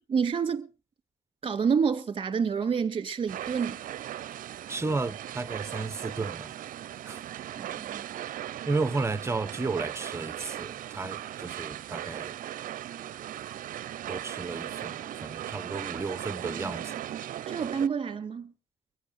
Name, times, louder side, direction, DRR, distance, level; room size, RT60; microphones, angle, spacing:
voice 1, 0.1-0.7 1.4-3.8 7.6-8.0 17.5-18.5, right 6 dB, 30° right, 2.2 m, -28 dB
sound 1, 3.3-17.9, right 12 dB, 55° right, 0.6 m, -38 dB
voice 2, 4.7-6.5 7.0-7.2 8.6-12.3 14.1-17.0, right 3 dB, 15° right, 0.9 m, -33 dB
23.5 x 8.1 x 5.0 m
cardioid pair, 110°, 17 cm